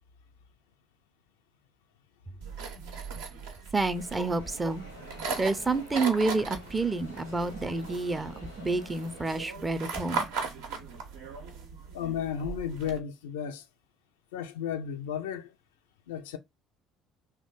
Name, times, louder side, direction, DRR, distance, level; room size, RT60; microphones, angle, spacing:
sound 1, 2.4-13.0, right 4 dB, 65° right, 0.6 m, -38 dB
voice 1, 3.7-4.8 5.4-10.3, right 3 dB, 20° right, 0.5 m, -29 dB
sound 2, 3.9-9.4, equal, 90° left, 0.8 m, -49 dB
voice 2, 11.9-13.7 14.3-15.5 16.1-16.4, left 8 dB, 70° left, 0.3 m, -33 dB
2.9 x 2.1 x 3.9 m
figure-of-eight pair, 55°, 0 cm